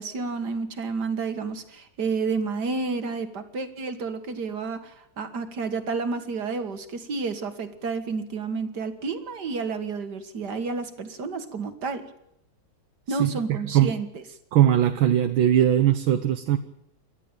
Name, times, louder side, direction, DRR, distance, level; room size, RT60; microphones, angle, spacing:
voice 1, 0.0-12.0 13.1-14.2, right 4 dB, 55° right, 9 dB, 2.2 m, -30 dB
voice 2, 13.1-14.0 14.5-16.6, right 11 dB, 80° right, 7 dB, 1.8 m, -20 dB
28.5 x 12.5 x 9.0 m, 0.80 s
omnidirectional pair, 2.2 m